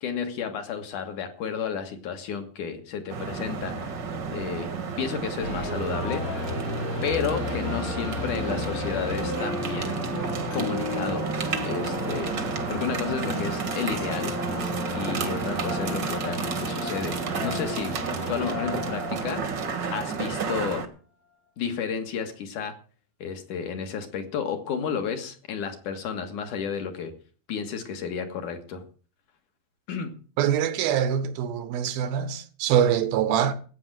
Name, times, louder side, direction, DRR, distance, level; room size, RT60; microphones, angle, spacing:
voice 1, 0.0-3.9 4.3-4.7 5.0-6.4 7.0-10.2 10.5-12.4 12.7-14.4 14.9-19.4 19.9-20.9 21.6-22.7 23.2-27.1 27.5-28.8 29.9-30.2, left 7 dB, 60° left, 3.0 m, -32 dB
sound 1, 3.1-20.9, right 5 dB, 50° right, 1.4 m, -31 dB
sound 2, 5.4-20.3, left 2 dB, 85° left, 7.7 m, -34 dB
voice 2, 30.4-33.5, right 9 dB, 85° right, 3.1 m, -24 dB
14.5 x 9.1 x 7.6 m
omnidirectional pair, 4.2 m